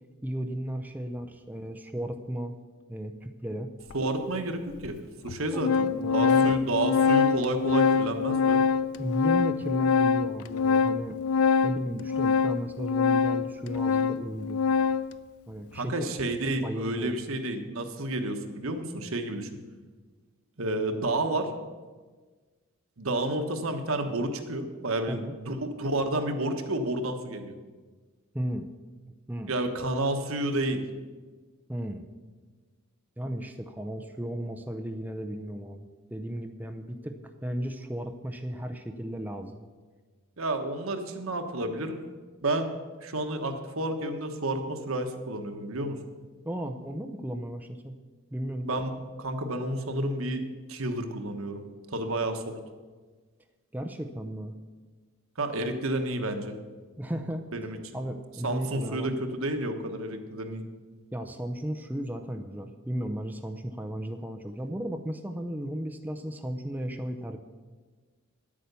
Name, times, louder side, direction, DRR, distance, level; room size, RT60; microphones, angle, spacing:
voice 1, 0.2-2.5 2.9-3.7 5.5-6.5 9.0-11.2 11.6-14.6 15.5-16.1 16.6-17.2 25.1-25.3 28.3-28.7 29.3-29.5 31.7-32.0 33.2-39.6 46.4-48.0 48.3-48.7 53.7-54.5 57.0-57.4 57.9-59.2 61.1-67.4, equal, 10° right, 5 dB, 0.5 m, -35 dB
Organ, 3.9-4.0 4.8-4.9 5.3-15.2, left 6 dB, 80° left, 0.4 m, -25 dB
voice 2, 3.9-5.0 5.2-8.6 15.7-19.5 20.6-21.5 23.0-27.5 29.5-30.8 40.4-42.0 42.4-46.0 48.6-48.9 49.2-50.4 50.7-51.6 51.9-52.6 55.4-56.6 57.5-57.8 58.4-60.6, right 1 dB, 65° right, 6 dB, 1.2 m, -30 dB
10.5 x 8.6 x 6.8 m, 1.4 s
head